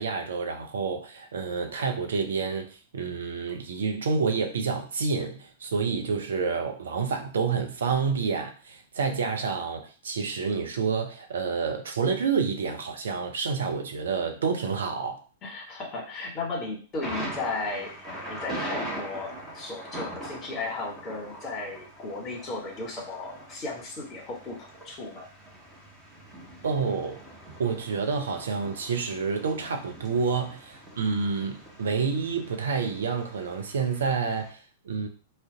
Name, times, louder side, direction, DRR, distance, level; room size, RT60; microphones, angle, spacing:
voice 1, 0.0-15.2 26.6-27.2 27.6-35.1, right 5 dB, 65° right, 0.6 m, -29 dB
voice 2, 15.4-25.3, left 3 dB, 30° left, 1.2 m, -35 dB
Thunder, 17.0-34.5, right 1 dB, 15° right, 1.0 m, -42 dB
2.5 x 2.1 x 3.8 m
figure-of-eight pair, 100°, 0 cm